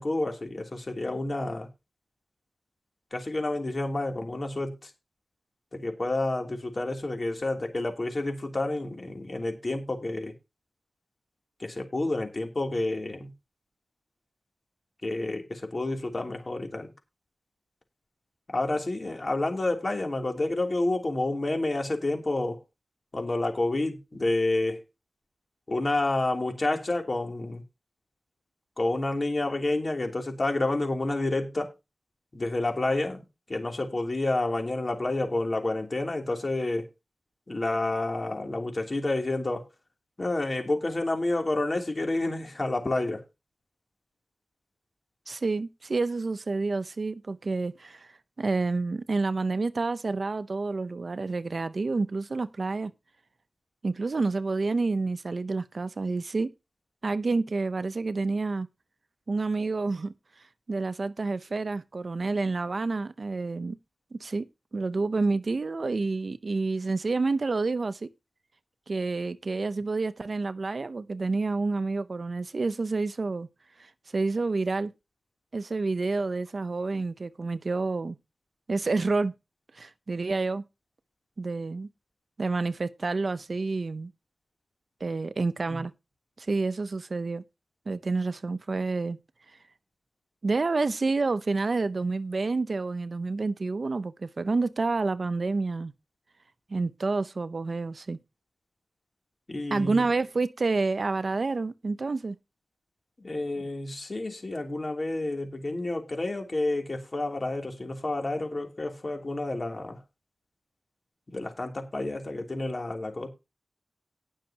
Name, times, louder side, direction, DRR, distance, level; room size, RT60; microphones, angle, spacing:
voice 1, 0.0-1.7 3.1-4.9 5.7-10.3 11.6-13.3 15.0-16.9 18.5-22.6 23.1-24.8 25.7-27.6 28.8-31.7 32.3-36.9 37.5-39.6 40.2-43.2 85.7-85.8 99.5-100.0 103.2-110.0 111.3-113.3, left 2 dB, 40° left, 3.0 m, -29 dB
voice 2, 45.3-48.1 48.4-52.9 53.8-56.5 57.0-58.7 59.3-60.1 60.7-63.8 64.1-64.5 64.7-68.1 68.9-73.5 73.8-74.9 75.5-78.2 78.7-79.3 79.7-80.6 81.4-81.9 82.4-84.1 85.0-85.9 86.4-87.4 87.9-89.2 90.4-95.9 96.7-98.2 99.7-102.4, right 3 dB, 55° right, 0.7 m, -29 dB
19.0 x 6.4 x 2.9 m
wide cardioid pair, 100°, 0 cm